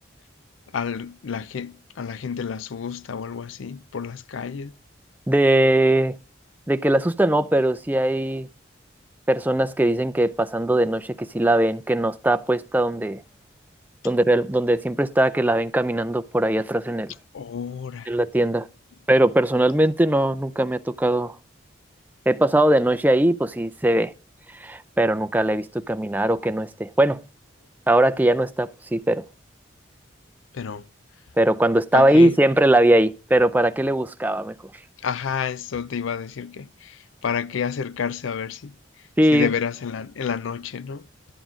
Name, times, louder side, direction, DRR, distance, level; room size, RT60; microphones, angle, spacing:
voice 1, 0.7-4.7 17.3-18.1 30.5-30.9 31.9-32.3 35.0-41.1, left 6 dB, 80° left, 0.4 m, -30 dB
voice 2, 5.3-6.2 6.7-8.5 9.3-13.2 14.0-17.1 18.1-18.7 19.1-21.4 22.3-24.1 24.6-27.2 27.9-29.2 31.4-34.5 39.2-39.5, right 1 dB, 10° right, 0.4 m, -20 dB
12.0 x 9.4 x 3.6 m
head